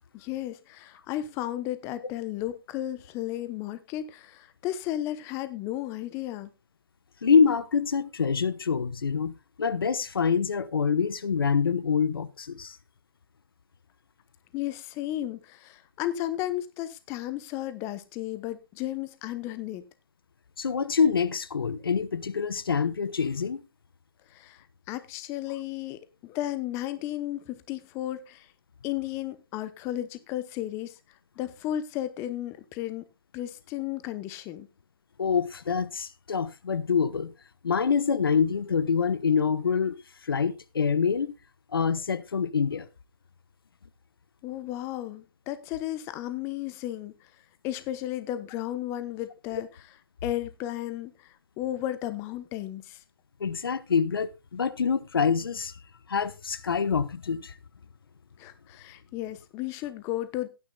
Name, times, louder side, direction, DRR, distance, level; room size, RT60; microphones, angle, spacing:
voice 1, 0.1-6.5 14.5-19.8 24.3-28.5 28.8-31.0 31.4-33.0 33.3-34.7 44.4-47.1 47.6-49.7 50.2-53.0 58.4-60.5, left 13 dB, 20° left, 0.9 m, -34 dB
voice 2, 7.2-12.8 20.6-23.6 35.2-37.3 37.6-40.0 40.2-41.3 41.7-42.9 53.4-55.8 56.1-57.5, left 6 dB, 75° left, 1.0 m, -26 dB
18.0 x 9.9 x 2.3 m
hypercardioid pair, 140°, 12 cm